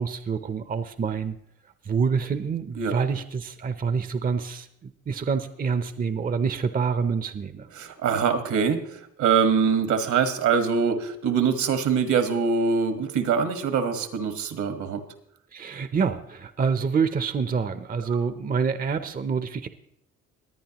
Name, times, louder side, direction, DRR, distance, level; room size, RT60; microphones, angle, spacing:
voice 1, 0.0-1.4 1.8-7.7 15.5-19.7, right 5 dB, 30° right, 11 dB, 0.6 m, -27 dB
voice 2, 7.8-8.8 9.2-15.0, right 6 dB, 75° right, 8 dB, 1.5 m, -23 dB
21.0 x 9.0 x 2.9 m, 0.73 s
cardioid pair, 90°, 30 cm